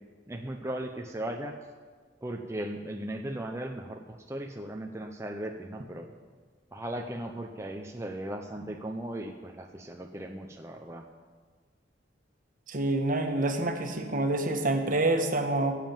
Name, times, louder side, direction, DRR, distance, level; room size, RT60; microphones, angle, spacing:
voice 1, 0.3-1.6 2.2-6.1 6.7-11.0, right 1 dB, 15° right, 2 dB, 0.7 m, -37 dB
voice 2, 12.7-15.8, right 2 dB, 50° right, 5 dB, 1.5 m, -27 dB
16.0 x 7.5 x 7.3 m, 1.5 s
head